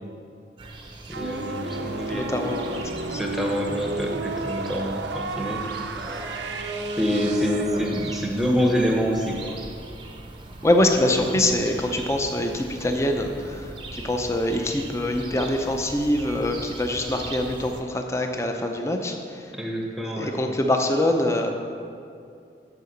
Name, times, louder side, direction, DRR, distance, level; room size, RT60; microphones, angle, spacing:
sound 1, 0.6-17.8, right 1 dB, 30° right, 0.7 m, -38 dB
voice 1, 1.1-2.3 3.2-5.7 7.0-9.6 11.1-11.4 19.5-20.3, equal, ahead, 0 dB, 0.9 m, -26 dB
sound 2, 1.1-7.7, right 3 dB, 85° right, 0.6 m, -33 dB
voice 2, 2.1-3.2 10.6-19.5 20.2-21.5, left 1 dB, 15° left, 3 dB, 0.6 m, -24 dB
9.6 x 4.8 x 6.5 m, 2.4 s
head